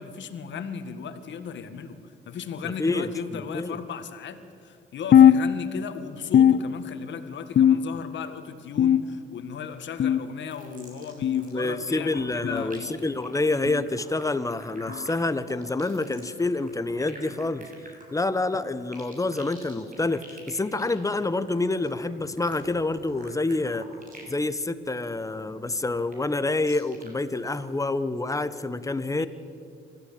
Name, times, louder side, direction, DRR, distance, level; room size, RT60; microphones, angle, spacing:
voice 1, 0.0-12.9 29.1-29.3, left 6 dB, 65° left, 8 dB, 2.0 m, -36 dB
voice 2, 2.8-3.8 11.5-17.7 18.1-20.2 20.5-23.9 24.3-29.3, left 2 dB, 15° left, 12 dB, 1.2 m, -27 dB
sound 1, 5.1-6.0 6.3-7.1 7.6-8.2 8.8-9.4 10.0-10.4 11.2-11.5 12.4-12.7 13.7-13.9 14.9-15.1 16.1-16.3 17.3-17.5 18.5-18.6 19.8-19.9, left 9 dB, 50° left, 0.6 m, -20 dB
sound 2, 10.5-11.6 11.8-24.4 24.7-25.0 25.4-27.1 27.5-27.6, right 1 dB, 40° right, 7.0 m, -47 dB
26.5 x 15.0 x 8.8 m, 2.4 s
cardioid pair, 90°, 20 cm